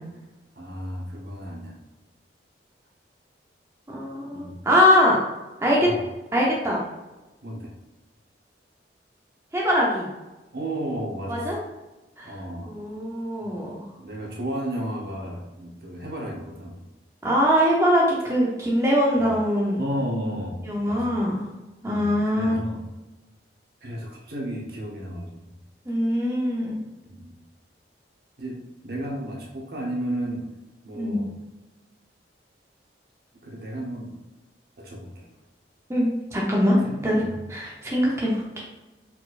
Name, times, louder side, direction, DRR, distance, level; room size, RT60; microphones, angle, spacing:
voice 1, 0.6-1.7 4.3-4.6 5.8-6.0 7.4-7.7 10.5-11.5 12.2-12.8 14.0-16.8 19.1-19.3 19.8-21.1 21.9-22.8 23.8-25.5 27.0-27.3 28.4-30.5 30.8-31.3 33.4-34.1 34.8-35.3 36.8-37.4, right 1 dB, 60° right, -1 dB, 1.1 m, -33 dB
voice 2, 3.9-5.2 5.6-5.9 6.3-6.8 9.5-10.1 11.3-11.6 12.2-12.3 12.6-13.8 17.2-19.8 20.6-21.4 21.8-22.6 25.9-26.8 31.0-31.2 35.9-36.8 37.0-37.2 37.5-38.6, equal, 15° right, -4 dB, 0.7 m, -22 dB
4.4 x 4.2 x 2.5 m, 1.1 s
head